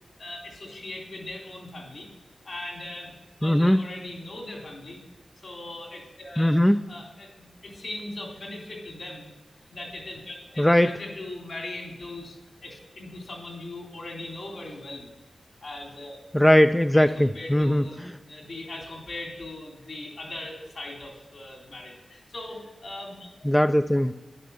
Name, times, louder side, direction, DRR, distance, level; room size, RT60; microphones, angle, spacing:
voice 1, 0.2-2.1 2.4-3.1 3.4-5.0 5.4-6.6 6.9-7.3 7.6-9.3 9.7-15.1 15.6-16.2 16.9-23.3, left 2 dB, 60° left, 1 dB, 3.2 m, -39 dB
voice 2, 3.4-3.8 6.4-6.8 10.6-10.9 16.3-18.2 23.4-24.1, equal, 5° left, 9 dB, 0.4 m, -20 dB
11.0 x 10.5 x 6.9 m, 1.1 s
wide cardioid pair, 130°, 0 cm